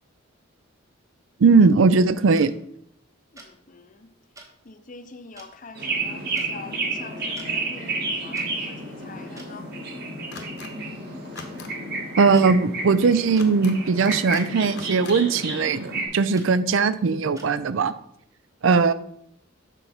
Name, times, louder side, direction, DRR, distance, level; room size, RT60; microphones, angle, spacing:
voice 1, 1.4-2.5 12.2-17.9 18.6-18.9, right 4 dB, 70° right, 0.4 m, -19 dB
sound 1, 2.3-2.5 3.4-3.5 4.3-4.5 5.4-5.5 6.3-6.5 7.2-7.5 8.3-8.5 9.4-9.5 10.3-10.5 11.4-11.5 12.3-12.5 13.3-13.5 14.3-14.5 15.3-15.5 16.3-16.5 17.3-17.5, right 2 dB, 15° right, 0.9 m, -45 dB
voice 2, 3.3-4.1 4.6-9.7, left 3 dB, 40° left, 0.6 m, -44 dB
sound 2, 5.8-16.1, right 2 dB, 50° right, 2.1 m, -31 dB
sound 3, 10.3-10.7 11.2-11.7 13.3-13.7 14.0-14.4 14.7-15.2, left 5 dB, 55° left, 0.9 m, -41 dB
6.9 x 4.6 x 5.6 m
head